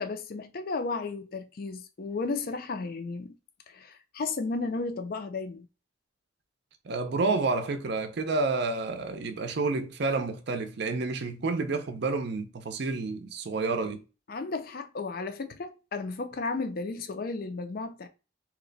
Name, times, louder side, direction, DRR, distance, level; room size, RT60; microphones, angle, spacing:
voice 1, 0.0-3.3 3.7-5.7 14.3-18.1, left 3 dB, 50° left, 0.4 m, -34 dB
voice 2, 6.8-14.0, right 3 dB, 55° right, 0.5 m, -29 dB
2.9 x 2.2 x 3.8 m
head